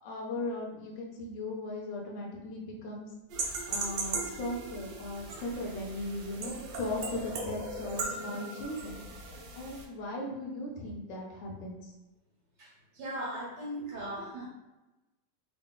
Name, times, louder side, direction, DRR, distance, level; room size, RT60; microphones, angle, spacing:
voice 1, 0.0-3.1 3.7-9.0 9.6-11.9 13.9-14.1, left 1 dB, 55° left, -2 dB, 0.9 m, -38 dB
sound 1, 3.3-9.8, right 3 dB, 90° right, 1.4 m, -38 dB
voice 2, 12.6-14.5, right 1 dB, 65° right, -5 dB, 1.7 m, -38 dB
3.8 x 2.1 x 3.6 m, 1.1 s
omnidirectional pair, 1.9 m